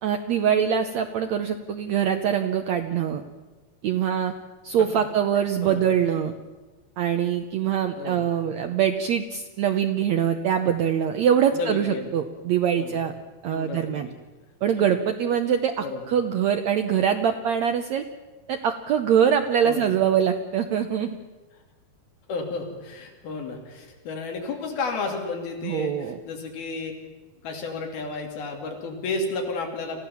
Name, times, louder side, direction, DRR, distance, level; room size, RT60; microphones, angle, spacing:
voice 1, 0.0-3.2 3.8-4.3 4.6-6.3 7.0-13.1 13.4-14.1 14.6-18.0 18.5-21.2 25.6-26.2, right 8 dB, 85° right, 7 dB, 1.6 m, -23 dB
voice 2, 7.9-8.4 11.5-12.1 12.8-13.0 13.5-14.1 15.8-16.0 19.6-20.0 22.3-26.9 27.4-30.0, left 3 dB, 80° left, 2 dB, 4.5 m, -32 dB
27.0 x 15.5 x 7.1 m, 1.3 s
omnidirectional pair, 4.3 m